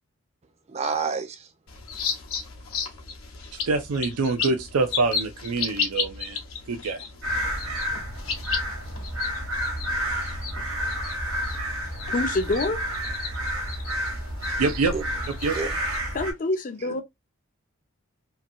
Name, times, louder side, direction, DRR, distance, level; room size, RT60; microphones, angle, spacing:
voice 1, 0.7-1.5 14.5-14.6 14.9-15.1 15.5-15.7, right 4 dB, 30° right, 0.4 m, -29 dB
sound 1, 1.7-16.0, left 5 dB, 75° left, 0.8 m, -35 dB
voice 2, 3.7-6.4 6.7-7.0 14.6-14.9 15.4-15.6, right 3 dB, 90° right, 0.4 m, -25 dB
sound 2, 7.2-16.3, equal, 75° right, 1.1 m, -30 dB
voice 3, 12.1-12.8 16.1-17.0, left 2 dB, 35° left, 0.4 m, -26 dB
2.8 x 2.6 x 2.4 m
head